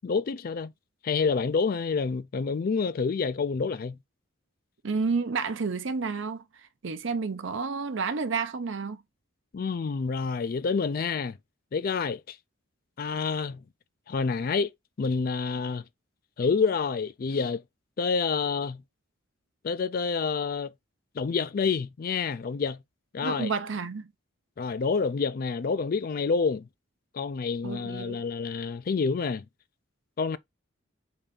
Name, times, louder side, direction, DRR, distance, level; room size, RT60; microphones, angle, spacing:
voice 1, 0.0-0.7 1.0-4.0 9.5-11.4 11.7-12.4 13.0-13.6 14.1-14.7 15.0-15.8 16.4-17.6 18.0-18.8 19.6-20.7 21.2-22.8 23.1-23.5 24.6-26.7 27.1-29.4 30.2-30.4, left 5 dB, 45° left, 0.3 m, -28 dB
voice 2, 4.8-6.4 6.8-9.0 23.2-24.1 27.6-28.2, right 4 dB, 65° right, 0.6 m, -30 dB
3.9 x 3.4 x 3.7 m
head